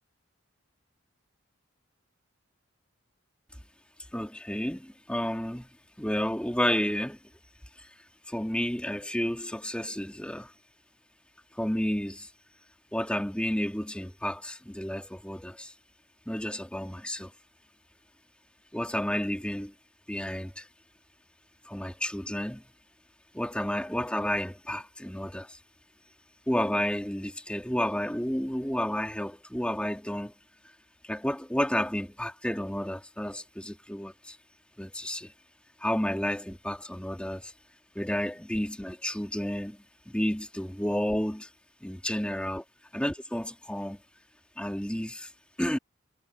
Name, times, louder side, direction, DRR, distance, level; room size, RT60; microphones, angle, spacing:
voice 1, 4.1-5.7 6.0-7.2 7.8-7.9 8.3-10.5 11.6-12.3 12.9-15.7 16.3-17.3 18.7-19.7 20.1-20.7 21.7-22.6 23.3-25.6 26.5-30.3 31.0-34.4 34.8-35.3 35.8-37.5 38.0-41.5 41.8-42.6 42.9-44.0 44.6-45.3 45.6-45.8, equal, 5° left, 2.1 m, -31 dB
head